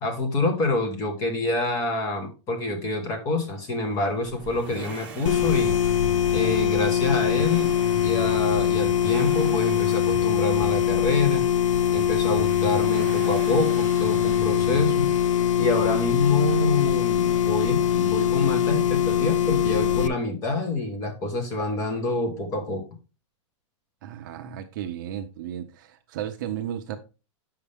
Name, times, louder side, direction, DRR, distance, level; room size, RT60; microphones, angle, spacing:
voice 1, 0.0-5.8 6.3-7.7 8.0-11.5 11.9-15.1 15.6-22.8, left 2 dB, 20° left, 1.4 m, -27 dB
Accelerating revving vroom, 4.2-16.2 17.5-17.6, left 3 dB, 10° right, 1.4 m, -39 dB
sound 1, 5.3-20.1, left 9 dB, 90° left, 0.6 m, -22 dB
voice 2, 24.0-27.0, right 10 dB, 40° right, 0.7 m, -34 dB
8.1 x 5.7 x 3.5 m
supercardioid pair, 175°, 16 cm